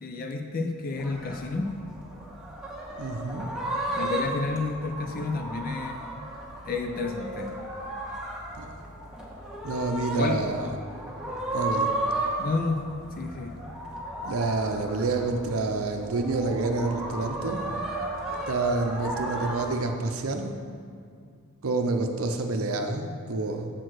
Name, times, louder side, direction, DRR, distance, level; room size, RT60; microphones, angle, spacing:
voice 1, 0.0-1.8 4.0-6.0 6.6-7.5 10.1-10.5 12.4-12.9 13.2-13.6, left 3 dB, 40° left, 5 dB, 0.4 m, -30 dB
sound 1, 1.0-19.6, right 1 dB, 5° right, 1.1 m, -34 dB
voice 2, 3.0-3.5 8.6-8.8 9.6-10.7 11.5-11.9 14.2-17.7 18.5-20.6 21.6-23.7, right 3 dB, 65° right, 4 dB, 0.6 m, -28 dB
7.5 x 4.5 x 6.2 m, 2.2 s
head